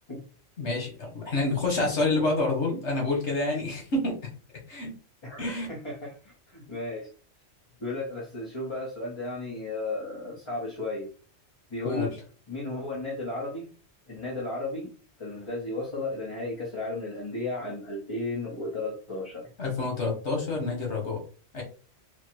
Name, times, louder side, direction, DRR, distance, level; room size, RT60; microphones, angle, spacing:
voice 1, 0.6-4.2 4.7-4.9 5.4-5.7 11.8-12.1 19.6-21.2 21.5-21.6, left 2 dB, 80° left, 0 dB, 1.9 m, -28 dB
voice 2, 5.2-7.1 7.8-11.1 11.7-12.1 12.5-13.7 14.1-14.9 15.2-19.5, left 2 dB, 25° left, -4 dB, 1.1 m, -34 dB
4.3 x 2.4 x 4.5 m, 0.39 s
omnidirectional pair, 1.1 m